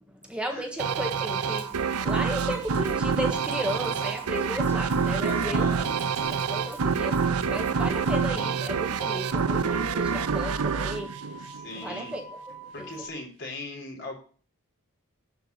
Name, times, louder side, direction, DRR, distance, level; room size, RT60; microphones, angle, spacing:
voice 1, 0.1-5.7 6.2-11.4 11.7-12.4 12.8-13.0, equal, 5° right, 1.4 m, -35 dB
sound 1, 0.8-12.0, right 5 dB, 85° right, 0.6 m, -27 dB
Sink (filling or washing), 0.9-10.6, left 1 dB, 10° left, 2.2 m, -52 dB
sound 2, 1.5-13.1, right 2 dB, 30° left, 2.9 m, -44 dB
voice 2, 5.2-5.9 11.5-12.1 12.7-14.1, left 2 dB, 55° left, 3.7 m, -38 dB
12.0 x 4.9 x 8.0 m
head